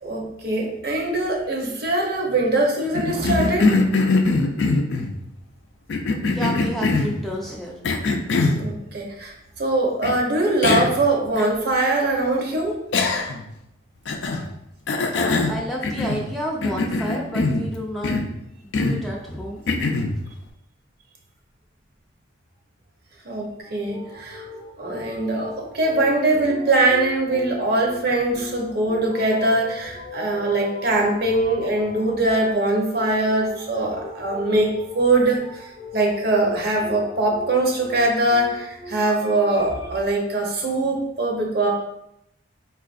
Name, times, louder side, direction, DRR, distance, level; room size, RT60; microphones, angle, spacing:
voice 1, 0.0-3.7 8.5-12.8 23.2-24.4 24.8-41.7, right 2 dB, 55° right, 0 dB, 0.7 m, -22 dB
Cough, 2.9-5.1 5.9-7.2 7.8-8.6 10.0-10.1 10.6-11.0 11.4-11.5 12.9-13.5 14.1-14.5 14.9-16.3 16.6-17.7 18.0-18.3 18.7-19.1 19.7-20.2, left 3 dB, 70° left, 0.4 m, -22 dB
voice 2, 6.2-7.7 15.1-18.2 18.6-19.6, equal, ahead, -3 dB, 0.3 m, -30 dB
sound 1, 23.6-39.9, left 2 dB, 40° left, 0.7 m, -40 dB
4.5 x 2.4 x 2.4 m, 0.81 s
head